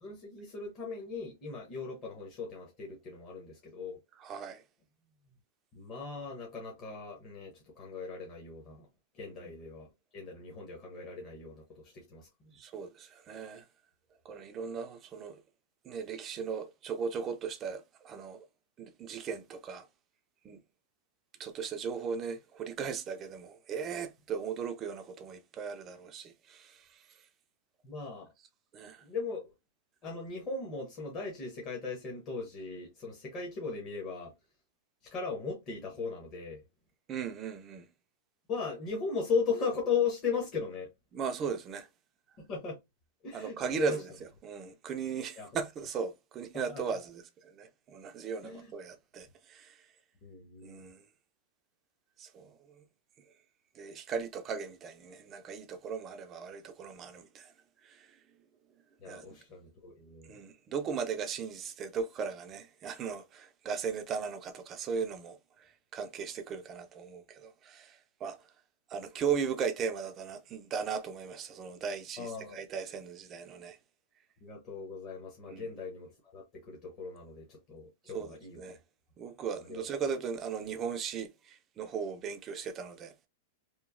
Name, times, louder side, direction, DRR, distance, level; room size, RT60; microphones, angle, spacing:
voice 1, 0.0-4.0 5.7-8.9 9.1-9.9 10.1-12.5 27.8-28.3 29.0-29.5 30.0-34.3 35.1-36.6 38.5-40.9 42.5-42.8 43.2-44.0 45.4-45.5 46.5-47.0 48.4-48.7 50.2-50.8 59.0-60.4 72.2-72.6 74.4-78.6 79.7-79.8, left 5 dB, 30° left, 0.7 m, -37 dB
voice 2, 4.2-4.6 9.2-9.3 12.5-13.6 14.3-15.4 15.8-18.4 18.8-19.9 20.4-20.6 21.4-27.0 28.7-29.0 37.1-37.9 41.1-41.9 43.3-49.8 50.6-51.0 52.2-52.6 53.8-57.5 57.8-58.1 59.0-59.2 60.3-68.4 68.9-73.8 75.5-75.7 78.1-78.8 79.2-83.1, right 6 dB, 25° right, 0.3 m, -37 dB
2.9 x 2.0 x 2.4 m
supercardioid pair, 155°, 0 cm